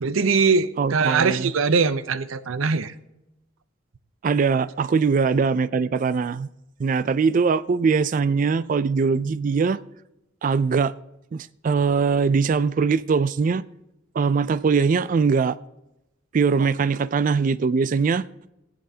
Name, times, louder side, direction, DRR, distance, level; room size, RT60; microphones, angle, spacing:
voice 1, 0.0-2.9, right 5 dB, 85° right, 0.6 m, -21 dB
voice 2, 0.8-1.5 4.2-6.5 6.8-9.8 10.4-10.9 11.3-13.6 14.2-15.6 16.3-18.2, right 5 dB, 40° right, 0.3 m, -21 dB
20.0 x 7.7 x 2.8 m
head